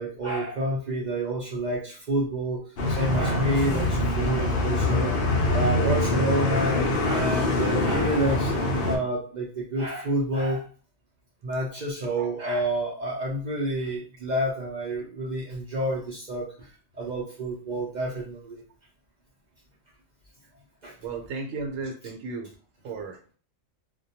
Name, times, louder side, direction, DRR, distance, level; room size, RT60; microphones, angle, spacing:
voice 1, 0.0-5.2 5.5-8.5 8.9-10.6 11.4-16.7 17.0-18.6 20.8-20.9, right 1 dB, 65° right, -3 dB, 0.4 m, -29 dB
sound 1, 2.8-9.0, left 2 dB, 60° left, 0.6 m, -24 dB
voice 2, 21.0-22.5 22.8-23.2, right 4 dB, 80° right, 3 dB, 1.0 m, -34 dB
2.2 x 2.2 x 2.7 m, 0.39 s
omnidirectional pair, 1.4 m